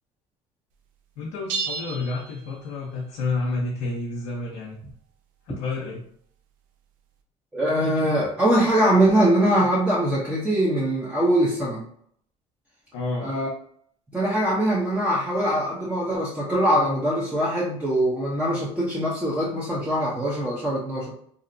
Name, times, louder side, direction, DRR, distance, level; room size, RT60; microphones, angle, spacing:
voice 1, 1.2-4.8 5.4-6.0 12.9-13.3, left 3 dB, 80° left, -3 dB, 0.6 m, -29 dB
sound 1, 1.5-3.1, right 4 dB, 70° right, 0.4 m, -33 dB
voice 2, 7.5-11.8 13.2-13.5 14.1-21.1, right 1 dB, 10° right, -6 dB, 0.7 m, -22 dB
2.6 x 2.0 x 2.5 m, 0.65 s
supercardioid pair, 80°, 14 cm